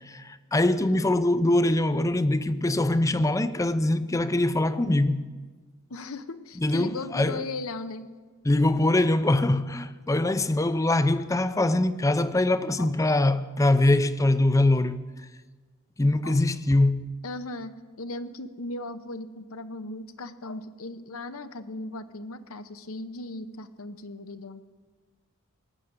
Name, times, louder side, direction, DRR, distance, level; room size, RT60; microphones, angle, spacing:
voice 1, 0.1-5.3 6.6-7.4 8.4-15.0 16.0-17.1, left 2 dB, 15° left, 0.5 m, -23 dB
voice 2, 5.9-8.0 10.2-10.3 12.8-12.9 16.2-16.4 17.2-24.7, left 2 dB, 70° left, 0.8 m, -37 dB
18.5 x 7.7 x 9.6 m
head